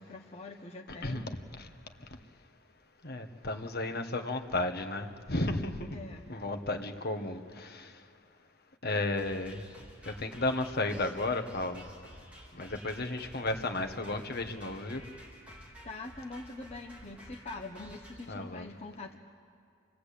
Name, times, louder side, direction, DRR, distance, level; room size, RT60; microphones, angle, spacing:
voice 1, 0.0-1.4 5.9-6.3 15.8-19.2, left 2 dB, 30° left, 1 dB, 1.1 m, -44 dB
voice 2, 3.0-6.0 6.3-8.0 8.8-9.6 10.1-11.8 12.5-15.0 18.3-18.7, left 2 dB, 50° left, 5 dB, 1.7 m, -33 dB
sound 1, 9.2-18.3, equal, 5° right, 4.1 m, -52 dB
28.0 x 20.5 x 8.6 m, 2.4 s
head